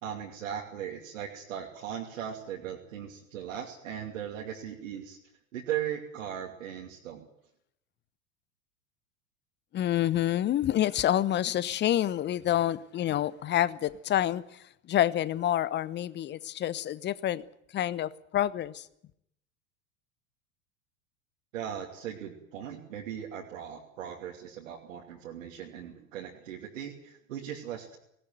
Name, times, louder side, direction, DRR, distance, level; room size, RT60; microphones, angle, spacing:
voice 1, 0.0-5.2 5.5-7.3 21.5-28.0, right 9 dB, 65° right, 2.8 m, -38 dB
voice 2, 9.7-14.4 14.9-17.4 17.7-18.8, left 12 dB, 25° left, 0.9 m, -27 dB
19.0 x 18.0 x 9.2 m
figure-of-eight pair, 80°, 42 cm